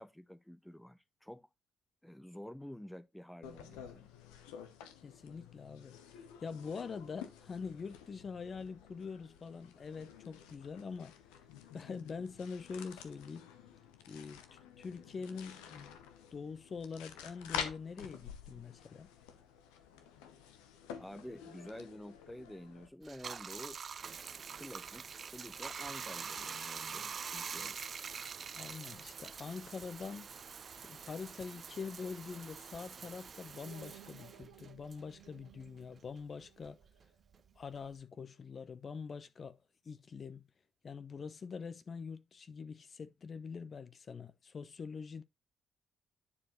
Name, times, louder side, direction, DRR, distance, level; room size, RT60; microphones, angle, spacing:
voice 1, 0.0-1.5 2.0-4.1 21.0-23.8 24.3-27.8, left 1 dB, 5° left, 0.6 m, -50 dB
sound 1, 3.4-22.9, left 8 dB, 85° left, 0.8 m, -49 dB
voice 2, 5.0-11.1 11.7-13.5 14.1-16.0 16.3-19.1 28.5-30.3 30.8-36.8 37.6-39.6 39.8-40.5 40.8-45.2, left 5 dB, 50° left, 0.8 m, -44 dB
Bathtub (filling or washing), 23.0-35.9 36.2-38.0, right 6 dB, 50° right, 0.3 m, -45 dB
sound 2, 33.5-38.5, right 12 dB, 80° right, 1.0 m, -60 dB
9.8 x 4.7 x 3.0 m
hypercardioid pair, 45°, 0 cm